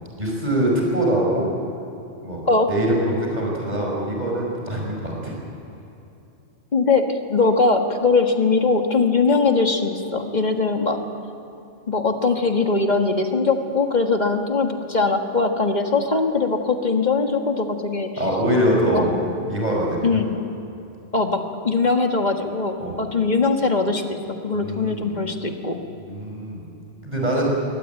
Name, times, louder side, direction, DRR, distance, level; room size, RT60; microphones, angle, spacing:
voice 1, 0.2-1.5 2.2-2.4 2.7-5.4 18.2-19.1 19.5-20.1 22.8-23.0 24.6-25.1 26.0-26.7 27.0-27.5, right 1 dB, 35° right, -2 dB, 5.7 m, -23 dB
voice 2, 6.7-11.0 11.9-18.1 18.9-19.1 20.0-20.3 21.1-24.2 24.4-25.8, left 3 dB, 35° left, 4 dB, 1.7 m, -21 dB
23.0 x 18.0 x 9.1 m, 2.8 s
omnidirectional pair, 1.2 m